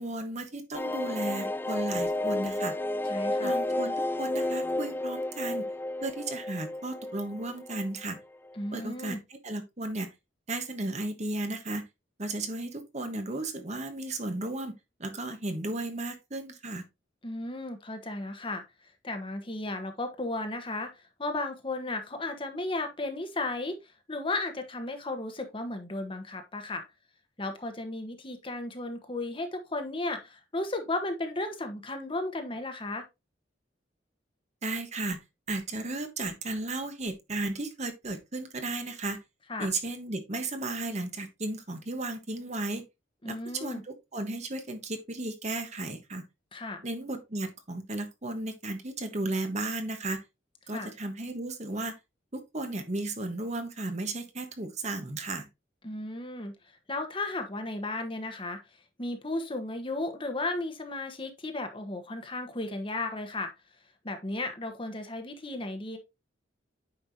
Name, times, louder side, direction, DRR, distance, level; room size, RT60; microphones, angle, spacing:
voice 1, 0.0-2.7 3.4-5.7 6.0-8.2 8.7-9.2 9.4-10.1 10.5-11.9 12.2-14.7 15.0-16.8 34.6-35.2 35.5-39.2 39.6-42.8 43.2-46.2 46.8-50.2 50.7-51.9 52.3-55.5, right 2 dB, 40° right, 1.3 m, -34 dB
sound 1, 0.7-8.2 8.5-8.6 8.8-8.9, left 1 dB, 10° left, 0.3 m, -31 dB
voice 2, 3.1-3.6 8.6-9.2 17.2-18.6 19.0-23.8 24.1-26.8 27.4-33.1 39.5-39.7 43.2-43.8 46.5-46.8 50.7-50.9 55.8-56.5 56.9-58.6 59.0-63.5 64.0-66.0, left 2 dB, 30° left, 1.3 m, -34 dB
9.0 x 5.5 x 2.8 m
head